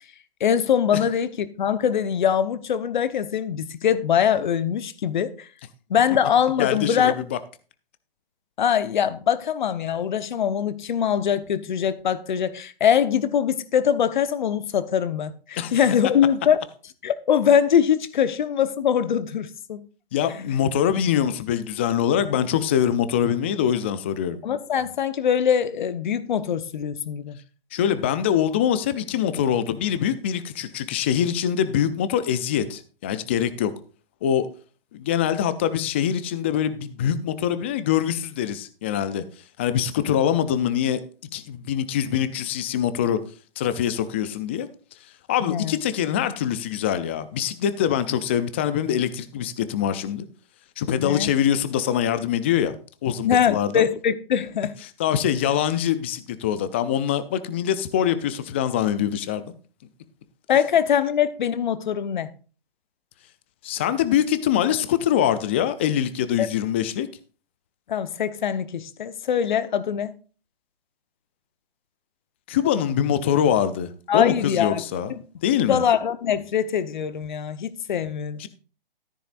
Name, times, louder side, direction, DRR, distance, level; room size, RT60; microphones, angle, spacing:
voice 1, 0.4-1.3 1.6-5.3 5.9-7.1 8.6-16.6 17.0-19.8 24.4-27.4 45.4-45.8 51.0-51.3 53.2-54.8 60.5-62.3 66.4-66.5 67.9-70.1 74.1-74.8 75.6-78.4, left 8 dB, 55° left, 1.0 m, -22 dB
voice 2, 6.6-7.4 15.6-15.8 20.1-24.4 27.7-33.7 34.2-34.5 34.9-39.2 39.6-41.0 41.3-43.2 43.6-44.7 45.3-50.3 50.8-52.8 53.0-53.9 55.0-59.4 63.6-67.1 72.5-75.1 75.4-75.8 78.4-78.5, left 9 dB, 15° left, 0.4 m, -24 dB
13.5 x 10.0 x 2.5 m
figure-of-eight pair, 135°, 29 cm